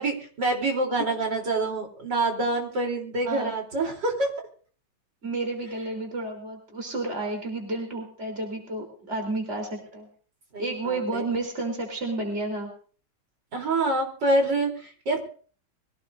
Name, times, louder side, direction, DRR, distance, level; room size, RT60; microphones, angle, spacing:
voice 1, 0.0-4.3 5.8-6.0 10.5-11.3 13.5-15.2, right 2 dB, 75° right, 1 dB, 4.3 m, -26 dB
voice 2, 3.2-3.6 5.2-10.1 10.6-12.7, right 2 dB, 40° right, 2 dB, 4.1 m, -31 dB
24.0 x 17.0 x 2.7 m, 0.43 s
omnidirectional pair, 1.9 m